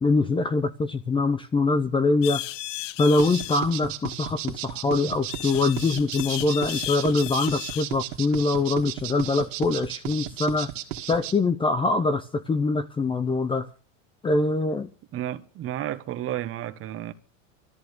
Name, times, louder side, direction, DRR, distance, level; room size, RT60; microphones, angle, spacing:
voice 1, 0.0-2.4 3.0-10.7 11.1-13.7 14.2-14.9, left 3 dB, 15° left, 0.8 m, -23 dB
sound 1, 2.2-3.7 5.3-7.9, left 17 dB, 70° left, 0.7 m, -34 dB
sound 2, 3.2-11.3, right 14 dB, 75° right, 2.3 m, -34 dB
voice 2, 15.1-17.1, right 12 dB, 35° right, 1.3 m, -32 dB
14.0 x 11.5 x 6.6 m
supercardioid pair, 130°, 38 cm